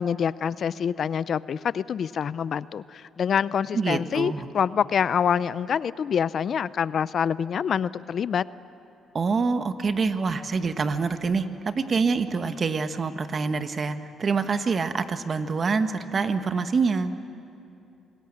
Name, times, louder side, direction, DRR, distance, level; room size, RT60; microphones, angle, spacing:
voice 1, 0.0-8.4, left 7 dB, 55° left, 18 dB, 0.5 m, -26 dB
voice 2, 3.7-4.5 9.1-17.1, right 4 dB, 40° right, 9 dB, 1.3 m, -26 dB
26.5 x 20.0 x 8.8 m, 2.6 s
cardioid pair, 90°, 0 cm